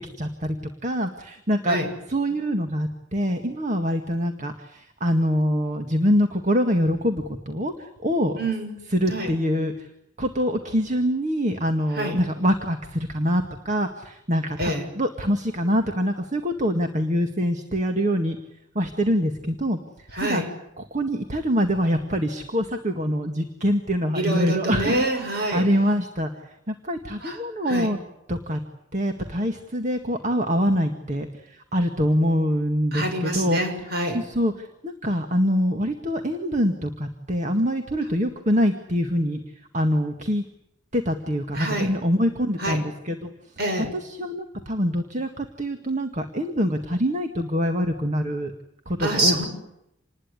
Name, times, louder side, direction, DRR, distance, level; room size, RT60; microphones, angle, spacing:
voice 1, 0.2-0.6 0.8-1.8 2.1-8.3 8.9-9.7 10.2-18.4 18.8-19.8 20.2-20.4 20.9-26.3 26.7-28.0 28.3-28.6 28.9-31.3 31.7-33.6 34.1-39.4 39.7-40.4 40.9-43.3 43.9-48.5 48.9-49.4, equal, 40° right, 5 dB, 2.0 m, -24 dB
voice 2, 8.4-8.7 9.1-9.3 11.9-12.2 14.6-14.8 20.1-20.5 24.1-25.7 27.2-27.4 27.7-27.9 32.9-34.2 41.6-41.9 42.6-42.8 43.6-43.9 49.0-49.5, right 1 dB, 55° right, 4 dB, 7.2 m, -26 dB
28.0 x 20.5 x 9.9 m, 0.83 s
head